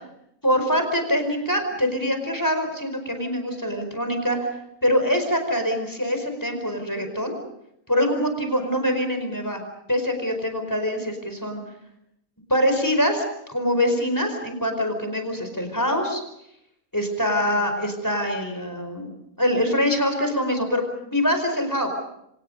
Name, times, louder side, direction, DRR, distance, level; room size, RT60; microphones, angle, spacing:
voice 1, 0.4-4.4 4.8-7.3 7.9-9.6 9.9-11.6 12.5-16.2 16.9-19.1 19.4-21.9, equal, 15° left, 5 dB, 4.8 m, -24 dB
28.5 x 26.0 x 5.4 m, 0.78 s
omnidirectional pair, 1.5 m